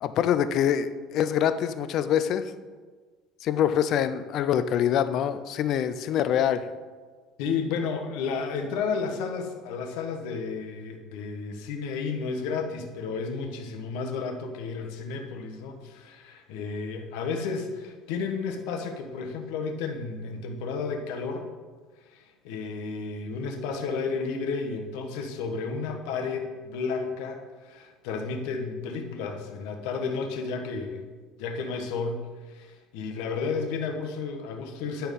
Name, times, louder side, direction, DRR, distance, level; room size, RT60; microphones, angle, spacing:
voice 1, 0.0-2.5 3.4-6.7, left 9 dB, 55° left, 12 dB, 0.5 m, -25 dB
voice 2, 7.4-21.5 22.1-31.0 31.4-35.1, left 5 dB, 80° left, 3 dB, 1.2 m, -32 dB
10.5 x 4.5 x 5.3 m, 1.4 s
cardioid pair, 120°, 0 cm